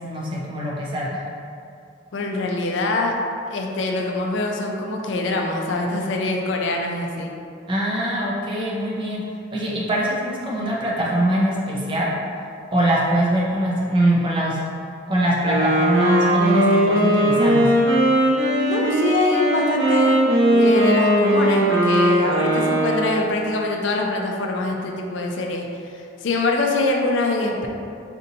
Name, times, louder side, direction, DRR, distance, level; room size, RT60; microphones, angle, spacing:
voice 1, 0.0-1.2 7.7-9.2 9.5-12.1 12.7-14.6 15.1-17.7, right 1 dB, 25° right, -5 dB, 0.5 m, -22 dB
voice 2, 2.1-3.2 3.5-7.3 18.6-20.2 20.5-27.7, left 2 dB, 65° left, 1 dB, 0.4 m, -24 dB
Wind instrument woodwind instrument, 15.3-23.3, right 1 dB, 70° right, 0.8 m, -18 dB
4.2 x 2.6 x 2.7 m, 2.4 s
head